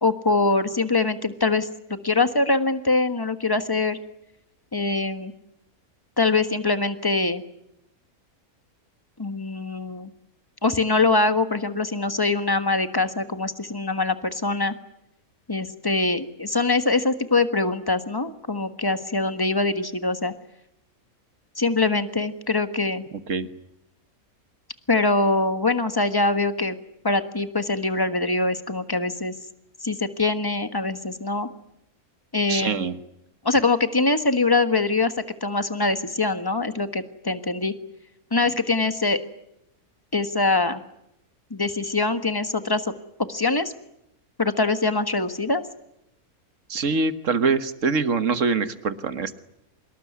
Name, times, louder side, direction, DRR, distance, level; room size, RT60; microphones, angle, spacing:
voice 1, 0.0-4.0 4.7-5.3 6.2-7.4 9.2-10.1 10.6-14.7 15.5-20.3 21.6-23.0 24.9-26.8 27.0-29.3 29.8-31.5 32.3-32.8 33.4-35.1 35.4-37.7 38.3-39.2 40.1-40.8 41.5-42.9 43.2-43.7 44.4-45.6, left 3 dB, 15° left, 9 dB, 1.4 m, -23 dB
voice 2, 32.5-32.9 46.7-49.4, right 4 dB, 60° right, 11 dB, 1.6 m, -24 dB
25.5 x 21.0 x 9.5 m, 0.82 s
omnidirectional pair, 1.6 m